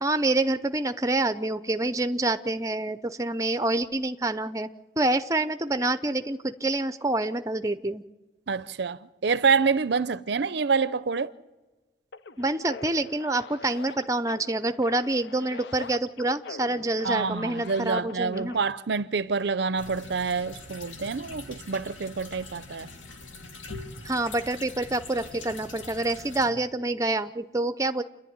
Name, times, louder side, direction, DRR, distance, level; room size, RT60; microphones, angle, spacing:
voice 1, 0.0-4.7 5.0-8.0 12.4-18.6 24.0-28.0, right 2 dB, 15° right, 0.6 m, -27 dB
voice 2, 8.5-11.3 17.0-22.9, right 5 dB, 60° right, 0.6 m, -27 dB
sound 1, 12.1-18.6, left 4 dB, 60° left, 0.7 m, -43 dB
sound 2, 19.8-26.5, left 3 dB, 85° left, 2.6 m, -43 dB
28.0 x 11.0 x 9.5 m
head